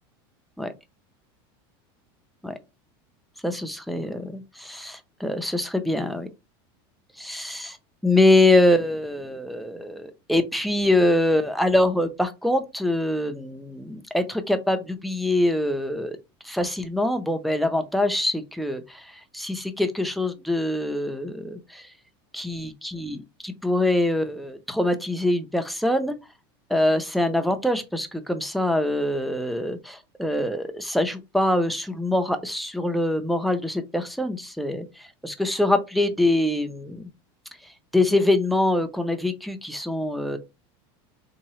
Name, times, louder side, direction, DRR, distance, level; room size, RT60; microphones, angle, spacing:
voice 1, 3.4-6.3 7.2-7.8 8.0-16.2 16.4-21.9 22.3-26.1 26.7-37.1 37.6-40.4, left 1 dB, ahead, 0.3 m, -24 dB
3.7 x 2.8 x 3.0 m
supercardioid pair, 160°, 13 cm